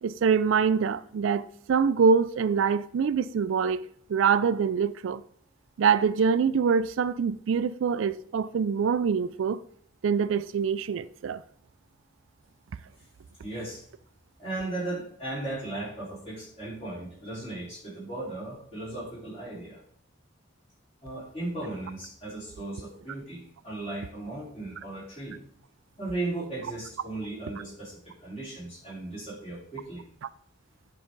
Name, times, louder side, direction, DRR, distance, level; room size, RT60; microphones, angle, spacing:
voice 1, 0.0-3.8 4.1-5.2 5.8-9.6 10.0-11.4, right 6 dB, 75° right, 0.4 m, -24 dB
voice 2, 13.4-13.8 14.4-19.8 21.0-25.4 26.0-30.0, right 2 dB, 30° left, 4.1 m, -36 dB
9.5 x 5.7 x 3.9 m
head